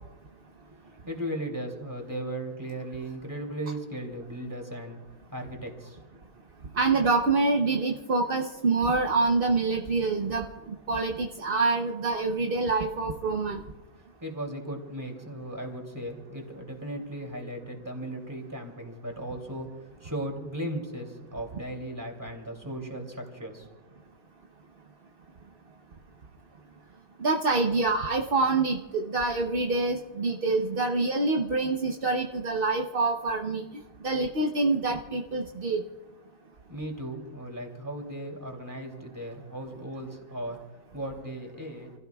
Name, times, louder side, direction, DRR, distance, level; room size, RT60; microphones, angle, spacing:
voice 1, 0.9-5.0 5.3-6.0 14.2-19.7 20.0-23.7 36.7-40.6 40.9-41.9, right 1 dB, 10° right, 1 dB, 2.7 m, -36 dB
voice 2, 6.7-13.6 27.2-33.6 34.0-35.8, right 3 dB, 50° right, 2 dB, 0.7 m, -26 dB
29.0 x 16.5 x 2.3 m, 1.3 s
omnidirectional pair, 1.9 m